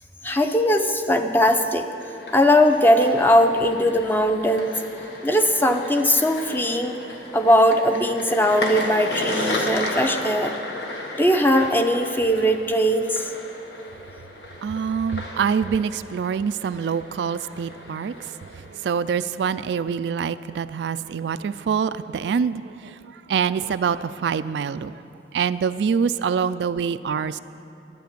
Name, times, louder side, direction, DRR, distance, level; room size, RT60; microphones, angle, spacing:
voice 1, 0.2-1.9 2.3-4.8 5.2-7.0 7.3-10.5 11.2-13.2, equal, 10° left, 6 dB, 0.6 m, -19 dB
sound 1, 1.9-18.9, left 1 dB, 75° left, 1.4 m, -34 dB
voice 2, 14.6-18.3 18.7-22.9 23.3-24.9 25.3-27.4, right 6 dB, 75° right, 13 dB, 0.3 m, -25 dB
11.5 x 9.0 x 6.8 m, 3.0 s
head